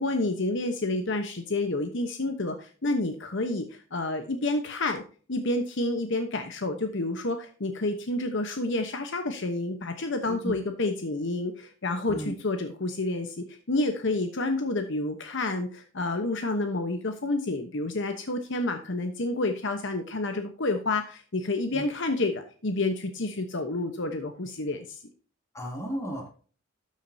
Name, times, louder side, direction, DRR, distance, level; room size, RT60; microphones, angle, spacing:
voice 1, 0.0-3.7 3.9-5.0 5.3-25.0, left 2 dB, 60° left, 6 dB, 1.0 m, -29 dB
voice 2, 25.5-26.3, right 1 dB, 15° left, 1 dB, 3.0 m, -34 dB
13.0 x 7.4 x 2.8 m, 0.40 s
head